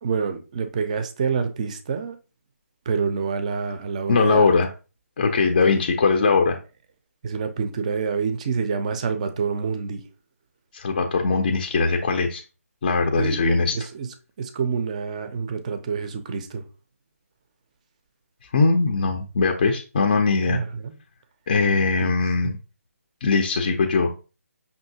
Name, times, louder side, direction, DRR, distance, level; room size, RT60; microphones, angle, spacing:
voice 1, 0.0-2.2 2.9-4.4 5.7-5.8 7.2-10.0 13.2-13.4 13.7-14.1 14.4-16.6 20.5-20.9 22.0-22.1, right 5 dB, 25° right, 0.4 m, -27 dB
voice 2, 4.1-4.7 5.2-6.6 10.7-12.4 12.8-13.8 18.5-20.6 21.5-22.6 23.2-24.1, left 4 dB, 30° left, 0.4 m, -20 dB
5.5 x 2.6 x 2.7 m
figure-of-eight pair, 160°, 8 cm